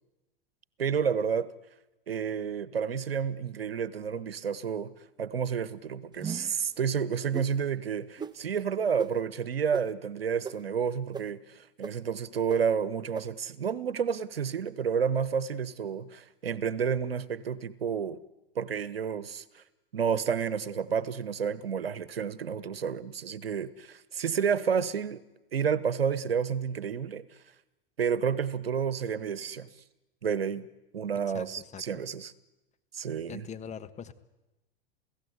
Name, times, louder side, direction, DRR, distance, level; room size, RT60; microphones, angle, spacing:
voice 1, 0.8-1.5 2.1-4.9 5.2-18.2 18.5-19.6 19.9-25.2 25.5-27.2 28.0-29.7 30.2-30.7 30.9-32.3 32.9-33.5, right 7 dB, 90° right, 1.1 m, -30 dB
sound 1, 6.2-6.6 7.3-7.5 8.2-8.3 9.0-9.1 9.7-9.8 10.4-10.5 11.1-11.2 11.8-11.9 12.5-12.6 13.1-13.2, right 6 dB, 15° right, 0.8 m, -36 dB
voice 2, 31.7-32.0 33.3-34.1, left 7 dB, 25° left, 1.4 m, -42 dB
28.5 x 16.5 x 8.1 m
hypercardioid pair, 100°, 29 cm